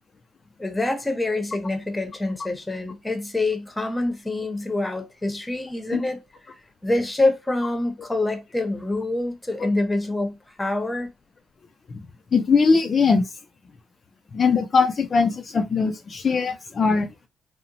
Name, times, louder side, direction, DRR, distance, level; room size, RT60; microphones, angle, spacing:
voice 1, 0.6-6.2 6.8-11.1, left 2 dB, 15° left, 0.7 m, -26 dB
voice 2, 12.3-13.2 14.3-17.1, left 5 dB, 45° left, 0.3 m, -20 dB
2.8 x 2.1 x 2.6 m
cardioid pair, 90°, 0 cm